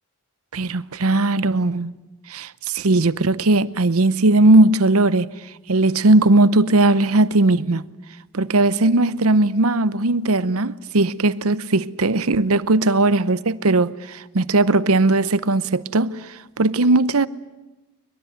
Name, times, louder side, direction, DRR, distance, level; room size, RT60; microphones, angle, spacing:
voice 1, 0.5-1.9 2.3-5.3 5.7-7.8 8.3-16.2 16.6-17.3, right 2 dB, 85° right, 0.9 m, -18 dB
23.0 x 22.0 x 9.0 m
head